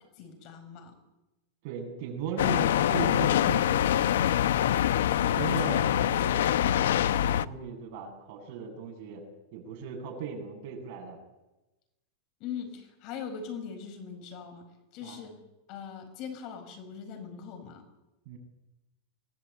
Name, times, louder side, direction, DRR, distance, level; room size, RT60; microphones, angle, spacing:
voice 1, 0.2-0.9 12.4-14.6 14.9-15.3 15.7-17.8, left 7 dB, 35° left, 7 dB, 5.2 m, -41 dB
voice 2, 1.6-4.3 5.2-6.8 7.4-9.2 9.5-11.2 15.0-15.2 18.3-18.4, right 6 dB, 45° right, 2 dB, 7.7 m, -38 dB
sound 1, 2.4-7.4, left 11 dB, 85° left, 0.8 m, -25 dB
24.5 x 19.5 x 8.8 m, 1.0 s
supercardioid pair, 165°, 0 cm